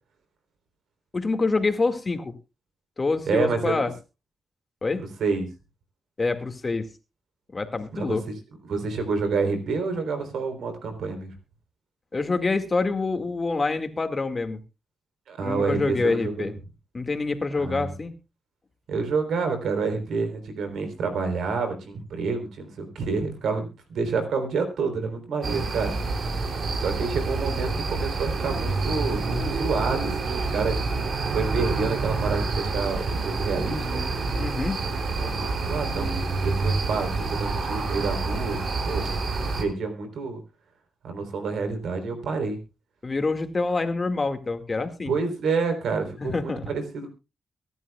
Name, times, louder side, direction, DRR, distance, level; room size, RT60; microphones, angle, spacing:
voice 1, 1.1-2.3 3.0-3.9 4.8-5.1 6.2-6.9 7.5-8.2 12.1-14.6 15.4-16.5 16.9-18.1 34.4-34.9 43.0-45.1 46.2-46.6, left 3 dB, 35° left, 8 dB, 2.1 m, -26 dB
voice 2, 3.3-3.8 5.0-5.5 7.9-8.3 8.6-11.3 15.3-16.5 17.6-17.9 18.9-26.0 26.8-30.8 31.3-34.0 35.2-39.2 39.6-40.4 41.0-42.6 45.1-47.1, right 4 dB, 85° right, 6 dB, 3.8 m, -28 dB
sound 1, 25.4-39.6, right 3 dB, 65° right, 3.1 m, -27 dB
23.5 x 11.0 x 2.4 m, 0.28 s
cardioid pair, 70°, 0 cm